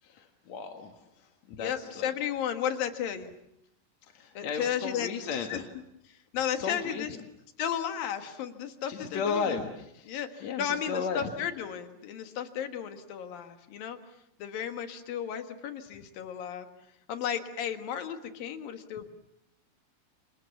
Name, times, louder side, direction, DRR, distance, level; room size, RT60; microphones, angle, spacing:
voice 1, 0.0-2.1 4.0-5.7 6.5-7.2 8.9-11.2, left 5 dB, 55° left, 4 dB, 2.6 m, -35 dB
voice 2, 1.6-3.3 4.4-5.1 5.5-5.6 6.3-7.1 7.6-9.6 10.1-14.0 14.4-16.7 17.1-19.1, left 9 dB, 85° left, 8 dB, 3.5 m, -34 dB
29.0 x 27.5 x 7.2 m, 0.77 s
omnidirectional pair, 4.0 m